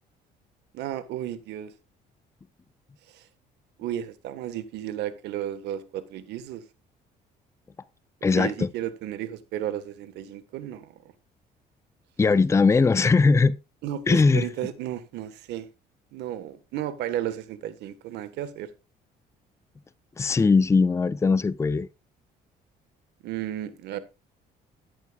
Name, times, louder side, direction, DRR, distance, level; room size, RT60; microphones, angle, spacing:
voice 1, 0.7-1.7 3.1-3.2 3.8-6.6 8.3-10.9 13.8-15.7 16.1-18.7 23.2-24.0, right 11 dB, 85° right, 1.5 m, -33 dB
voice 2, 8.2-8.7 12.2-13.6 14.1-14.5 20.2-21.9, left 4 dB, 15° left, 0.6 m, -20 dB
14.0 x 10.5 x 2.4 m
cardioid pair, 110°, 17 cm